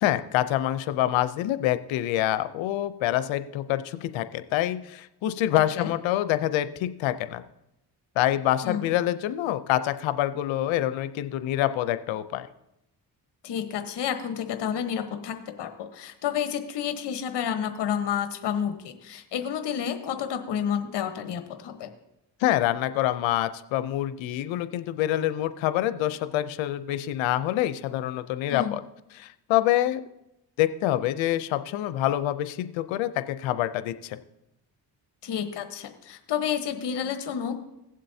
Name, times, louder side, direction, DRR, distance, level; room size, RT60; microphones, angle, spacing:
voice 1, 0.0-7.4 8.2-12.5 22.4-28.8 29.1-30.0 30.6-34.2, left 13 dB, 90° left, 13 dB, 0.7 m, -26 dB
voice 2, 5.5-5.9 8.6-8.9 13.4-21.9 28.5-28.7 35.2-37.6, left 8 dB, 65° left, 7 dB, 1.2 m, -30 dB
17.5 x 7.5 x 2.7 m, 0.88 s
supercardioid pair, 60°, 45 cm